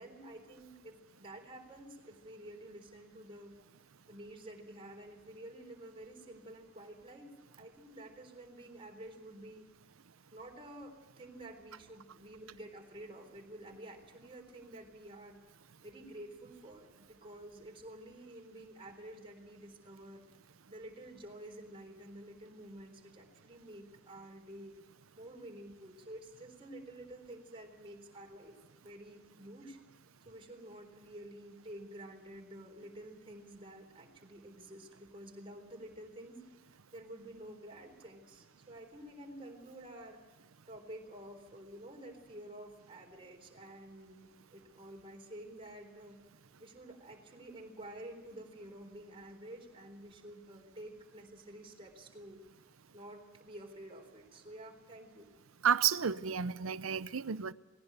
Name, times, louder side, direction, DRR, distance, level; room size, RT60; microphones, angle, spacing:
voice 1, 0.0-3.5 4.1-9.7 10.3-15.4 15.8-20.3 20.7-24.7 25.1-29.8 30.2-36.4 36.7-40.2 40.7-46.2 46.6-52.4 52.9-55.3, right 1 dB, 25° right, 3.8 m, -50 dB
voice 2, 55.6-57.5, right 7 dB, 80° right, 0.7 m, -31 dB
19.0 x 17.5 x 8.1 m
head